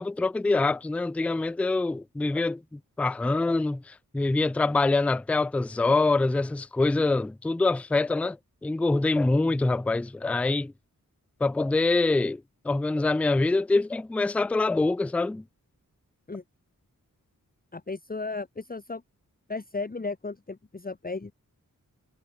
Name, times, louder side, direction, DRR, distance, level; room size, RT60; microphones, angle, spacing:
voice 1, 0.0-8.4 8.6-10.7 11.4-15.4, left 3 dB, 5° left, 0.3 m, -25 dB
voice 2, 17.7-19.0 19.5-21.3, left 3 dB, 25° left, 1.2 m, -35 dB
wide cardioid pair, 60°, 33 cm